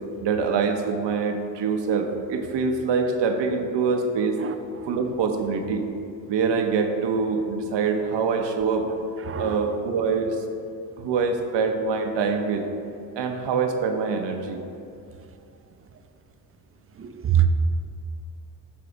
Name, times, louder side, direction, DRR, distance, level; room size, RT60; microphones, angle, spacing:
voice 1, 0.2-4.4 4.9-5.8 6.3-8.9 9.4-10.4 11.0-12.7 13.2-14.6, right 5 dB, 60° right, 4 dB, 0.8 m, -24 dB
voice 2, 17.0-17.5, right 12 dB, 30° right, 8 dB, 0.5 m, -22 dB
7.0 x 3.7 x 4.9 m, 2.6 s
supercardioid pair, 60°, 48 cm